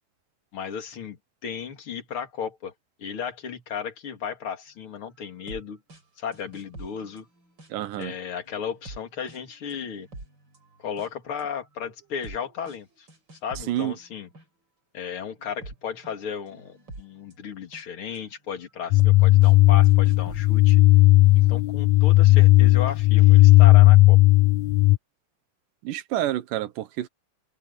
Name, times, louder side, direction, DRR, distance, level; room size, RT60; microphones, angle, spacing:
voice 1, 0.5-2.7 3.0-5.8 6.2-7.3 8.0-10.1 10.8-13.1 13.4-14.3 14.9-20.8 21.3-24.2, left 7 dB, 45° left, 3.1 m, -34 dB
sound 1, 5.2-5.6 5.9-6.0 6.3-8.0 8.4-11.1 11.4-14.4 15.2-18.2 18.8-19.2 19.4-19.5 19.8-20.8, right 2 dB, 30° right, 6.0 m, -46 dB
voice 2, 7.7-8.2 13.7-13.9 25.8-27.1, right 13 dB, 80° right, 2.6 m, -28 dB
sound 2, 18.9-25.0, left 19 dB, 80° left, 1.7 m, -15 dB
open air
omnidirectional pair, 3.7 m